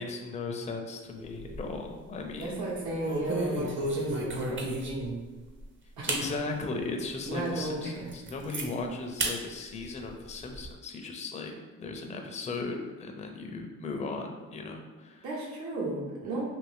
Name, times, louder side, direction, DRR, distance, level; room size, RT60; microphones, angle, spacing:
voice 1, 0.0-2.8 6.1-15.3, left 3 dB, 25° left, 3 dB, 0.4 m, -37 dB
sound 1, 1.2-1.9 2.3-2.5 3.0-5.1 5.6-5.7 6.0-6.3 6.8-6.9 7.4-7.5 7.8-8.7 9.2-9.4 9.8-10.7, right 2 dB, 40° right, 0.6 m, -33 dB
voice 2, 2.3-5.2 6.0-6.1 7.2-8.1 8.7-8.8 15.2-16.4, right 2 dB, 70° right, -4 dB, 1.1 m, -34 dB
2.6 x 2.6 x 3.3 m, 1.3 s
cardioid pair, 90°, 30 cm